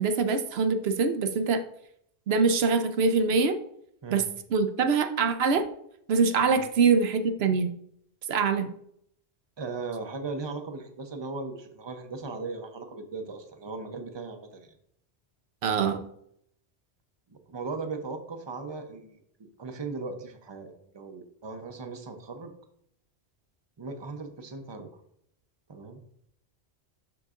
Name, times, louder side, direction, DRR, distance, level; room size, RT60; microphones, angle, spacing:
voice 1, 0.0-1.6 2.3-3.6 4.1-5.6 6.1-7.7 8.3-8.7 15.6-16.1, right 5 dB, 70° right, 9 dB, 0.8 m, -24 dB
voice 2, 9.6-14.7 17.3-19.2 19.6-22.5 23.8-24.9 25.7-26.0, right 4 dB, 30° right, 6 dB, 0.6 m, -38 dB
11.5 x 3.9 x 2.5 m, 0.72 s
omnidirectional pair, 1.1 m